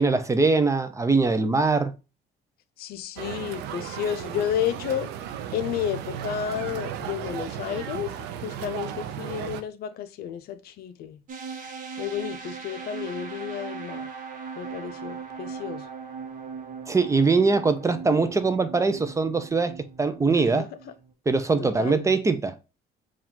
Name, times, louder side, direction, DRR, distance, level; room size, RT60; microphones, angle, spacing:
voice 1, 0.0-1.9 16.9-20.7 21.3-22.6, right 4 dB, 20° right, 0.4 m, -22 dB
voice 2, 2.8-5.1 5.5-8.1 8.4-11.2 12.0-14.1 14.6-15.9 20.3-20.7 21.6-22.2, left 9 dB, 65° left, 0.6 m, -31 dB
sound 1, 3.2-9.6, right 10 dB, 90° right, 0.5 m, -35 dB
sound 2, 11.3-21.1, right 5 dB, 50° right, 0.9 m, -39 dB
4.6 x 2.4 x 3.6 m
cardioid pair, 110°, 17 cm